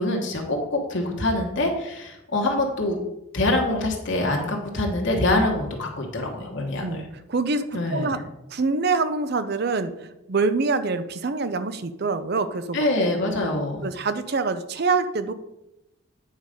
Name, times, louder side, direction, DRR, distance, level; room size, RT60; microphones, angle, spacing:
voice 1, 0.0-3.0 3.3-7.0 7.7-8.2 12.7-13.9, left 2 dB, 55° left, 0 dB, 1.4 m, -25 dB
voice 2, 7.3-8.2 8.5-12.8 13.8-15.3, right 4 dB, 50° right, 12 dB, 0.5 m, -25 dB
9.1 x 4.8 x 5.2 m, 0.90 s
head